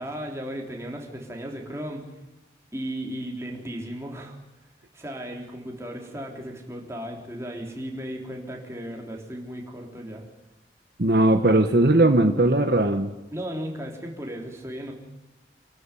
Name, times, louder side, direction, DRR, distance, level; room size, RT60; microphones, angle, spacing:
voice 1, 0.0-2.0 2.7-4.3 4.9-10.3 13.3-14.9, equal, 15° right, 1 dB, 3.6 m, -35 dB
voice 2, 11.0-13.1, right 2 dB, 60° right, 7 dB, 1.2 m, -19 dB
27.0 x 13.0 x 9.9 m, 0.99 s
head